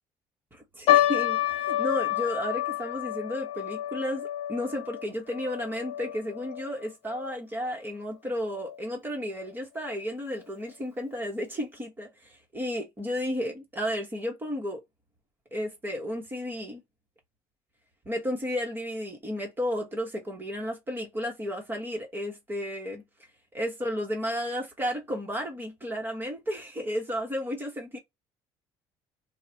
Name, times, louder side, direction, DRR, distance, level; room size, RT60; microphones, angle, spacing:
voice 1, 0.5-14.8 15.5-16.8 18.0-23.0 23.5-28.0, equal, 20° right, 1.4 m, -33 dB
sound 1, 0.9-7.4 7.6-7.7 8.5-8.8 9.4-9.5 9.8-10.0, left 13 dB, 60° left, 0.9 m, -29 dB
3.0 x 2.4 x 2.9 m
cardioid pair, 105°, 11 cm